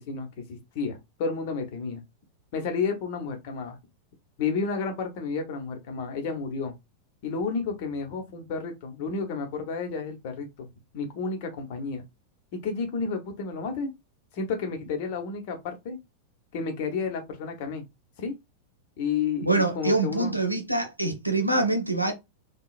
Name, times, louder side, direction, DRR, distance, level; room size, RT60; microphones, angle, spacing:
voice 1, 0.0-2.0 2.5-3.8 4.4-6.7 7.2-10.7 10.9-12.0 12.5-13.9 14.3-16.0 16.5-17.8 18.2-18.3 19.0-20.4, left 5 dB, 50° left, 1.0 m, -31 dB
voice 2, 19.4-22.1, right 2 dB, 90° right, 0.7 m, -25 dB
3.7 x 2.3 x 2.4 m
figure-of-eight pair, 90°, 0 cm